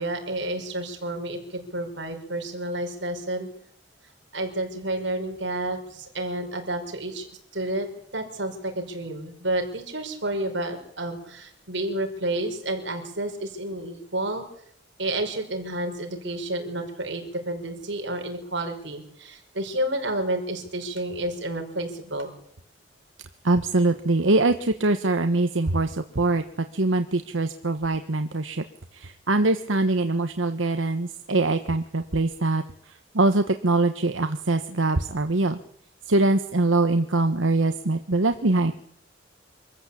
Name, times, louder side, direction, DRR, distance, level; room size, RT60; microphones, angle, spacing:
voice 1, 0.0-3.5 4.3-7.3 7.5-14.4 15.0-22.3, right 1 dB, 65° right, 4 dB, 5.6 m, -30 dB
voice 2, 23.4-26.4 26.7-28.6 28.9-35.6 36.1-38.7, right 2 dB, 90° right, 8 dB, 1.2 m, -23 dB
25.5 x 14.5 x 8.6 m, 0.70 s
head